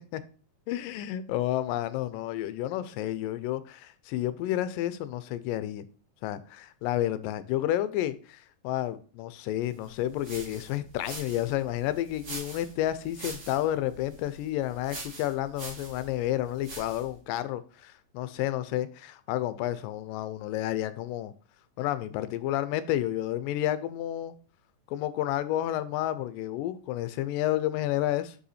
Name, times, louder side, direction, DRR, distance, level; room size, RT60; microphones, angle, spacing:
voice 1, 0.7-5.8 6.2-21.3 21.8-24.3 24.9-28.4, left 13 dB, 80° left, 2.2 m, -30 dB
sound 1, 9.8-17.2, right 2 dB, 75° right, 0.6 m, -44 dB
6.1 x 5.6 x 4.1 m
omnidirectional pair, 4.0 m